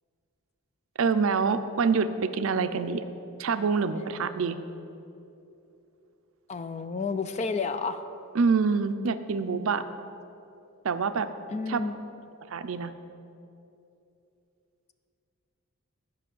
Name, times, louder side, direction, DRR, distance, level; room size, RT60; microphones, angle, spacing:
voice 1, 1.0-3.0 3.4-4.6 8.3-9.8 10.8-11.3 11.7-11.9 12.5-12.9, right 5 dB, 65° right, 11 dB, 0.4 m, -26 dB
voice 2, 6.5-8.0 11.5-11.9, left 4 dB, 30° left, 10 dB, 0.3 m, -30 dB
10.0 x 5.3 x 6.9 m, 2.8 s
head